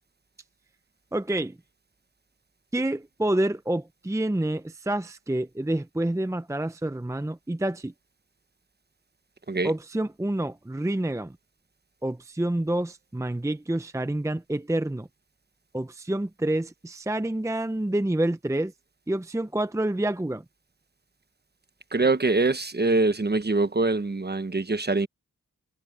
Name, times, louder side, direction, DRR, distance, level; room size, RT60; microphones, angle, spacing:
voice 1, 1.1-1.6 2.7-7.9 9.6-11.4 12.0-15.1 15.7-18.7 19.1-20.4, right 1 dB, 10° right, 0.8 m, -28 dB
voice 2, 21.9-25.1, right 3 dB, 30° right, 1.2 m, -24 dB
cardioid pair, 65°, 34 cm